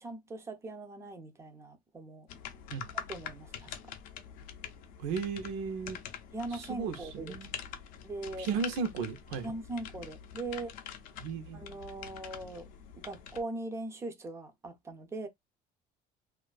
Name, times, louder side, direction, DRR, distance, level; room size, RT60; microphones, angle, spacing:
voice 1, 0.0-2.3 2.9-3.8 6.3-7.4 8.0-8.5 9.4-10.7 11.5-12.6 13.0-15.3, right 2 dB, 15° right, 0.4 m, -40 dB
sound 1, 2.3-13.4, left 8 dB, 55° left, 0.5 m, -45 dB
voice 2, 5.0-6.0 6.5-7.5 8.4-9.5 11.2-11.6, right 6 dB, 90° right, 0.7 m, -35 dB
2.5 x 2.3 x 2.2 m
cardioid pair, 170°, 17 cm